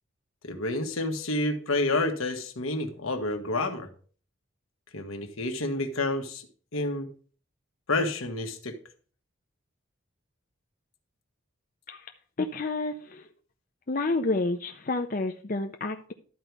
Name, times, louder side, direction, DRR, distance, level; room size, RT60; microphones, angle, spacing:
voice 1, 0.4-3.9 4.9-6.5 6.7-7.1 7.9-8.7, left 2 dB, 80° left, 5 dB, 1.4 m, -29 dB
voice 2, 12.4-13.3 13.9-16.1, left 3 dB, 40° left, 5 dB, 0.5 m, -29 dB
12.0 x 4.7 x 5.3 m, 0.42 s
head